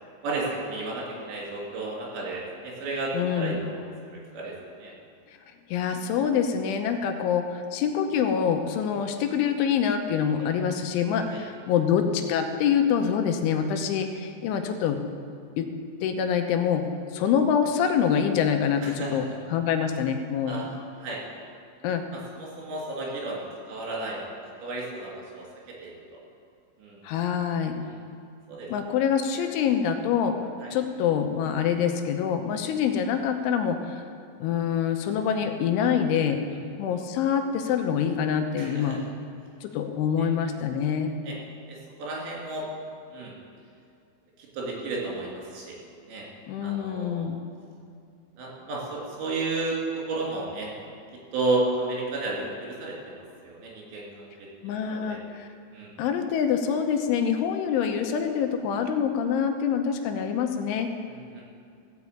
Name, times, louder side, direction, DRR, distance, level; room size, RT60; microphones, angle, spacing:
voice 1, 0.2-3.1 3.4-3.5 4.3-4.5 4.8-4.9 10.4-10.5 11.3-11.4 18.8-19.3 20.5-20.7 21.0-21.2 22.4-24.3 24.6-25.4 25.8-25.9 26.8-27.0 27.9-28.0 28.5-28.7 30.6-30.7 38.6-39.0 41.2-41.4 41.7-42.7 43.1-43.3 44.5-45.8 46.1-46.3 46.6-47.3 48.4-49.8 50.1-50.7 51.3-54.3 54.9-55.2 55.7-55.9 61.1-61.4, right 2 dB, 70° right, -4 dB, 5.3 m, -32 dB
voice 2, 3.1-3.6 5.7-15.0 15.6-15.7 16.0-16.9 17.1-20.6 21.8-22.0 27.0-27.8 28.7-30.4 30.7-34.1 34.4-36.4 36.8-39.0 39.6-41.1 46.5-47.4 54.6-55.5 56.0-60.9, left 7 dB, 85° left, 5 dB, 3.2 m, -25 dB
16.5 x 6.1 x 8.4 m, 2.3 s
omnidirectional pair, 5.5 m